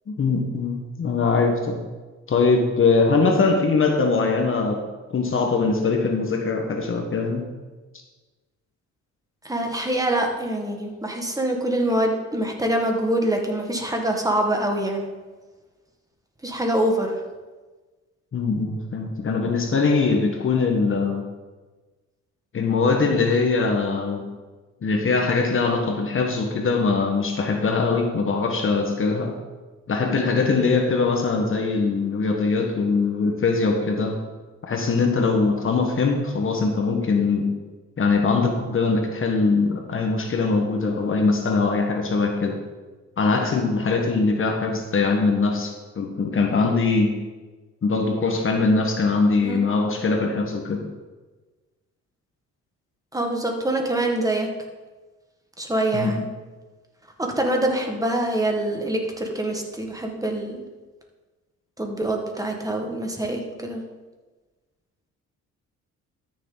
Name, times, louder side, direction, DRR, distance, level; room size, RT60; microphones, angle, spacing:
voice 1, 0.1-1.8 2.3-4.8 5.1-7.4 18.3-21.2 22.5-24.3 24.8-29.3 29.9-34.2 34.6-37.5 38.0-42.6 43.2-47.1 47.8-50.8 55.9-56.1, left 4 dB, 45° left, 3 dB, 1.4 m, -22 dB
voice 2, 9.4-15.1 16.4-17.1 49.4-49.6 53.1-54.5 55.6-56.3 57.2-60.6 61.8-63.8, right 1 dB, 10° right, 2 dB, 1.7 m, -25 dB
13.0 x 6.8 x 4.0 m, 1.3 s
cardioid pair, 90°, 30 cm